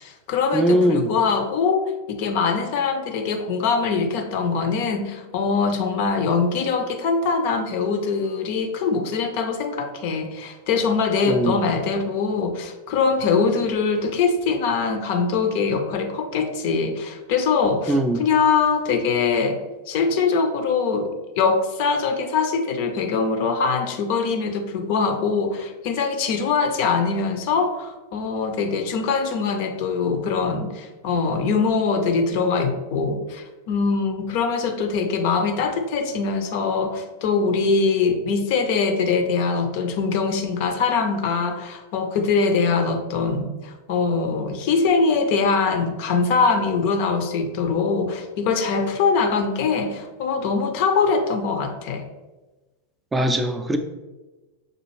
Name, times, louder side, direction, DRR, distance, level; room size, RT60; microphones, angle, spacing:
voice 1, 0.0-19.6 19.9-52.0, left 5 dB, 50° left, 6 dB, 0.5 m, -23 dB
voice 2, 0.5-1.1 11.3-11.6 17.9-18.2 53.1-53.8, equal, 15° right, 6 dB, 0.3 m, -20 dB
6.1 x 2.4 x 3.0 m, 1.1 s
figure-of-eight pair, 90°, 0 cm